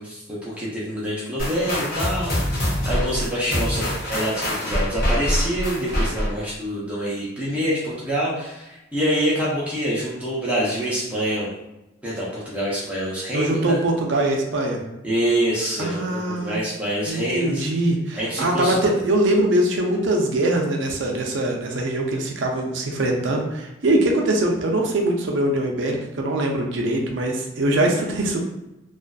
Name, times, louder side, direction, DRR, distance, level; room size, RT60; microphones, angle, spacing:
voice 1, 0.0-11.5 12.0-13.8 15.0-17.7 18.1-18.8, equal, 5° right, -8 dB, 0.5 m, -26 dB
sound 1, 1.4-6.5, equal, 45° left, 0.8 m, -25 dB
voice 2, 13.3-14.8 15.8-16.6 17.1-28.4, right 1 dB, 65° right, 1 dB, 0.4 m, -22 dB
2.5 x 2.3 x 2.2 m, 0.96 s
head